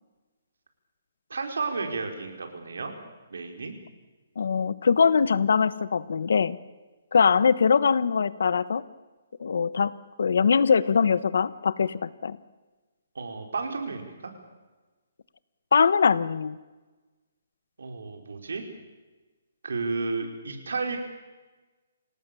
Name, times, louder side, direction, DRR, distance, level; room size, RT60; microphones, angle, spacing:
voice 1, 1.3-2.9 3.3-3.7 13.1-14.3 17.8-18.6 19.6-21.0, right 4 dB, 90° right, 4 dB, 4.9 m, -32 dB
voice 2, 4.4-6.6 7.1-8.8 9.4-12.4 15.7-16.6, left 6 dB, 70° left, 18 dB, 1.1 m, -22 dB
27.5 x 18.0 x 7.0 m, 1.2 s
hypercardioid pair, 170°, 0 cm